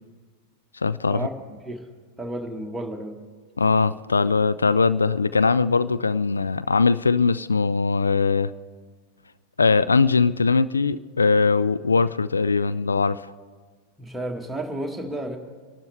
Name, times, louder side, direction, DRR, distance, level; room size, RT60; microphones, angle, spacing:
voice 1, 0.8-1.3 3.6-8.5 9.6-13.3, left 4 dB, 75° left, 15 dB, 0.3 m, -21 dB
voice 2, 2.2-3.2 14.0-15.4, right 1 dB, 5° right, 2 dB, 1.6 m, -32 dB
26.5 x 12.0 x 3.4 m, 1.5 s
figure-of-eight pair, 90°, 0 cm